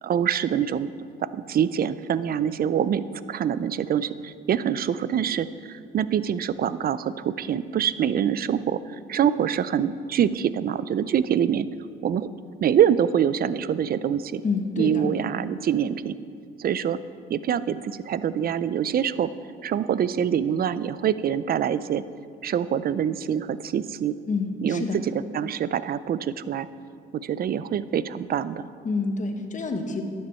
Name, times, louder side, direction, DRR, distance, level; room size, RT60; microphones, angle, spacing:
voice 1, 0.0-11.7 12.0-12.3 12.6-14.4 14.8-16.1 16.6-17.0 17.3-19.3 19.6-22.0 22.4-24.2 24.6-25.0 25.3-26.7 27.1-28.7, right 9 dB, 50° right, 15 dB, 0.5 m, -25 dB
voice 2, 14.4-15.1 24.3-25.0 28.8-30.0, left 4 dB, 40° left, 5 dB, 1.3 m, -27 dB
12.5 x 9.7 x 4.4 m, 2.3 s
cardioid pair, 90°, 20 cm